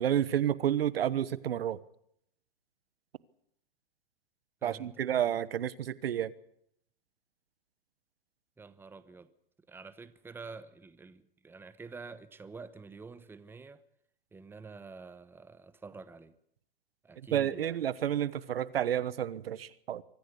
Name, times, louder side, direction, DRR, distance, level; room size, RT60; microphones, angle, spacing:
voice 1, 0.0-1.8 4.6-6.3 17.3-20.0, right 10 dB, 80° right, 1.2 m, -30 dB
voice 2, 4.6-5.0 8.6-9.3 9.7-13.8 14.3-16.3 17.0-17.8, right 4 dB, 5° right, 1.0 m, -48 dB
24.5 x 14.5 x 8.5 m
hypercardioid pair, 130°, 29 cm